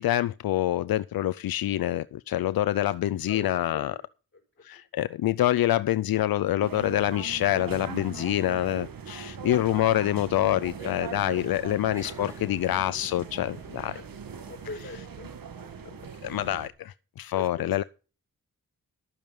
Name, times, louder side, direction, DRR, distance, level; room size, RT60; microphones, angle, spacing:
voice 1, 0.0-4.0 4.6-14.0 16.2-17.8, left 13 dB, 80° left, 0.5 m, -26 dB
voice 2, 2.6-4.1 4.7-4.8 12.0-12.2 14.0-14.1 14.4-15.3 17.3-17.9, left 3 dB, 35° left, 5.3 m, -43 dB
sound 1, 6.6-16.7, right 7 dB, 70° right, 1.8 m, -40 dB
sound 2, 9.7-14.8, right 2 dB, 10° right, 5.1 m, -50 dB
12.5 x 8.9 x 5.2 m
cardioid pair, 65°, 35 cm